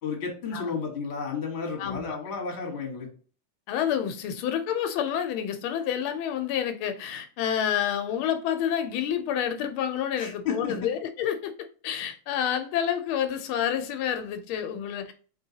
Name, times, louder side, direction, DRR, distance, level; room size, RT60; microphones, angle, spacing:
voice 1, 0.0-3.1 10.2-10.7, left 5 dB, 35° left, 1.3 m, -32 dB
voice 2, 1.8-2.2 3.7-11.5 11.8-15.1, left 9 dB, 85° left, 1.4 m, -29 dB
4.2 x 3.8 x 2.7 m
omnidirectional pair, 2.3 m